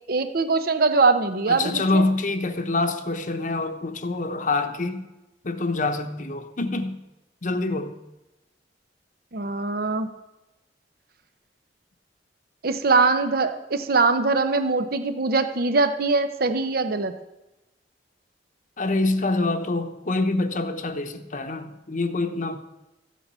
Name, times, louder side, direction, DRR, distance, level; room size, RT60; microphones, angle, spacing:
voice 1, 0.1-2.0 9.3-10.1 12.6-17.1, right 3 dB, 55° right, 10 dB, 0.8 m, -22 dB
voice 2, 1.5-5.1 5.4-7.0 7.4-7.9 18.8-22.6, left 2 dB, 45° left, 7 dB, 0.9 m, -26 dB
14.0 x 8.4 x 5.6 m, 0.99 s
head